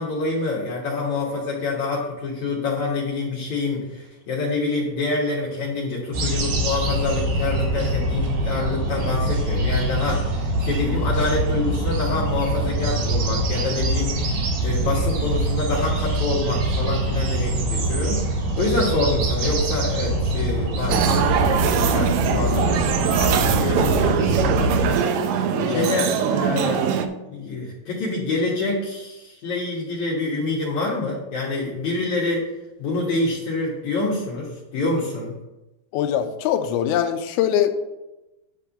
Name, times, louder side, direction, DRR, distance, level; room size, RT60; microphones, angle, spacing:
voice 1, 0.0-18.2 18.6-24.4 25.6-26.8 27.3-32.5 32.8-35.3, left 3 dB, 60° left, -6 dB, 2.5 m, -26 dB
sound 1, 6.1-24.9, right 1 dB, 60° right, 2.5 m, -24 dB
sound 2, 20.9-27.1, right 7 dB, 80° right, 2.0 m, -22 dB
voice 2, 25.5-25.9 35.9-37.7, left 10 dB, 85° left, 7 dB, 2.6 m, -22 dB
9.3 x 3.6 x 7.0 m, 1.0 s
omnidirectional pair, 4.4 m